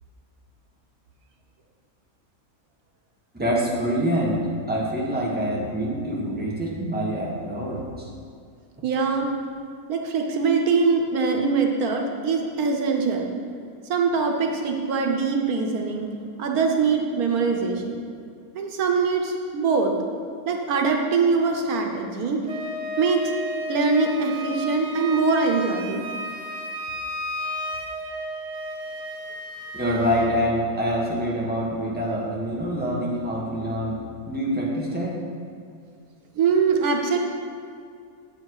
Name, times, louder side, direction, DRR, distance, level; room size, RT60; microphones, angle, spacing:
voice 1, 3.3-4.4 4.7-7.8 29.7-34.0 34.2-35.1, equal, 5° right, -5 dB, 1.4 m, -25 dB
voice 2, 8.8-9.3 9.9-13.3 13.9-16.1 16.4-18.0 18.5-19.9 20.4-22.4 23.0-23.2 23.7-26.0 36.3-37.2, right 4 dB, 90° right, 2 dB, 1.4 m, -23 dB
Wind instrument woodwind instrument, 22.4-30.3, equal, 60° right, 1.2 m, -33 dB
7.9 x 7.1 x 4.8 m, 2.3 s
omnidirectional pair, 1.5 m